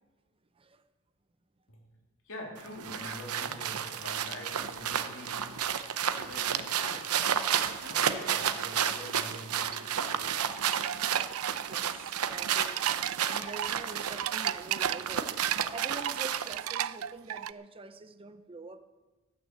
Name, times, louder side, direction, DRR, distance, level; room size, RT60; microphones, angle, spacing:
voice 1, 2.2-5.6 6.0-7.3 7.8-10.4, left 1 dB, 65° left, 3.2 m, -45 dB
sound 1, 2.6-16.7, right 8 dB, 85° right, 0.8 m, -32 dB
sound 2, 10.5-17.5, right 12 dB, 65° right, 0.4 m, -35 dB
voice 2, 11.7-12.9 13.2-15.3 15.7-18.8, right 3 dB, 25° right, 0.6 m, -45 dB
14.0 x 9.4 x 7.6 m
head